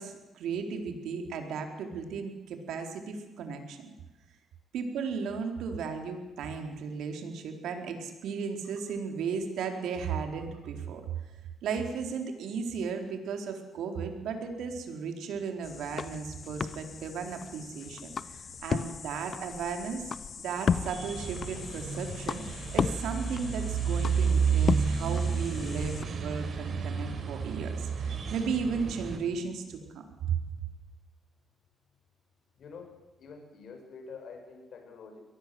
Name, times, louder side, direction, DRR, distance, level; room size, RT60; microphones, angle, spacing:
voice 1, 0.0-3.8 4.7-11.0 11.6-22.4 22.7-30.4, right 5 dB, 80° right, 5 dB, 4.2 m, -35 dB
sound 1, 15.6-26.0, left 6 dB, 45° left, 0.9 m, -35 dB
sound 2, 20.8-29.2, right 6 dB, 50° right, 4.8 m, -31 dB
voice 2, 32.6-32.9 33.2-35.2, left 5 dB, 60° left, 3 dB, 6.9 m, -46 dB
23.0 x 18.5 x 7.9 m, 1.1 s
cardioid pair, 90°, 0 cm